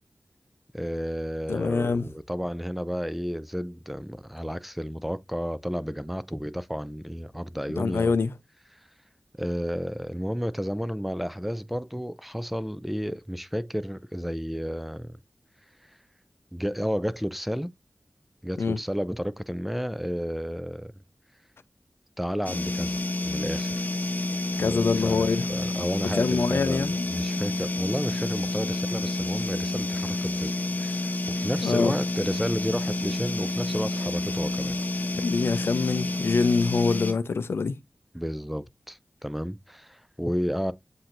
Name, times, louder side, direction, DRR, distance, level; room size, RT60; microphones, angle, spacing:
voice 1, 0.7-8.1 9.4-15.2 16.5-17.7 18.4-20.9 22.2-23.8 24.6-30.5 30.8-34.8 38.1-40.7, equal, 5° right, 0.4 m, -32 dB
voice 2, 1.5-2.0 7.7-8.3 18.6-18.8 24.6-25.5 26.1-27.0 31.6-31.9 35.2-37.8, left 4 dB, 85° left, 0.4 m, -25 dB
sound 1, 22.4-37.1, left 2 dB, 50° left, 0.8 m, -29 dB
7.6 x 2.7 x 2.5 m
wide cardioid pair, 55°, 4 cm